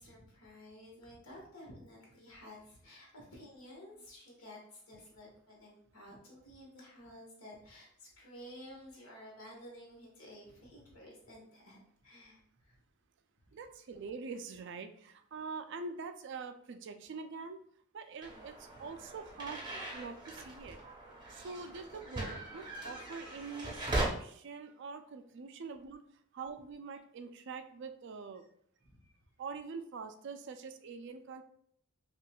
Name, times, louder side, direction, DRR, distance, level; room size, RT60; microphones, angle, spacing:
voice 1, 0.0-12.8 13.4-13.5 18.7-18.8 28.8-29.1, left 1 dB, 70° left, -3 dB, 1.5 m, -53 dB
voice 2, 13.5-17.6 17.9-19.6 19.9-20.8 21.3-28.4 29.4-31.4, right 4 dB, 55° right, 8 dB, 0.4 m, -44 dB
sound 1, 18.2-24.1, right 1 dB, 20° right, 0.7 m, -40 dB
5.7 x 2.5 x 2.3 m, 0.65 s
head